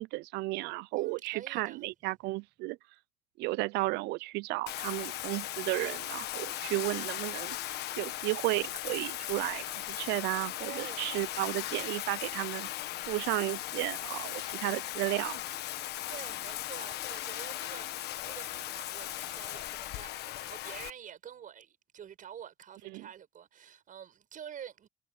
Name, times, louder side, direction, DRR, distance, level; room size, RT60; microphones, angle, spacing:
voice 1, 0.0-2.8 3.4-7.6 8.0-12.7 13.1-15.4 22.9-23.1, right 21 dB, 90° right, 0.5 m, -33 dB
voice 2, 0.9-1.8 10.7-11.2 16.1-24.9, right 9 dB, 50° right, 7.4 m, -48 dB
Bathtub (filling or washing), 4.7-20.9, left 14 dB, 75° left, 1.4 m, -38 dB
cardioid pair, 110°, 17 cm